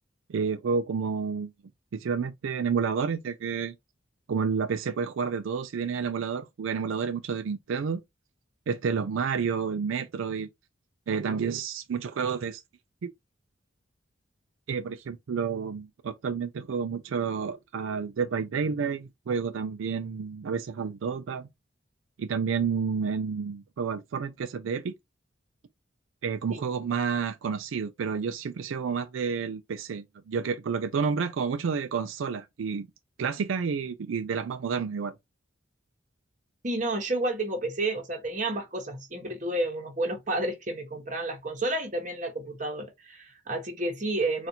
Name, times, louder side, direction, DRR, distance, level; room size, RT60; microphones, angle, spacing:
voice 1, 0.3-1.5 1.9-3.7 4.3-8.0 8.7-10.5 11.1-12.6 13.0-13.1 14.7-21.5 22.2-24.9 26.2-32.9 33.2-35.1, right 6 dB, 80° right, 0.4 m, -30 dB
voice 2, 36.6-44.5, right 2 dB, 40° right, 1.1 m, -31 dB
4.1 x 2.4 x 2.7 m
head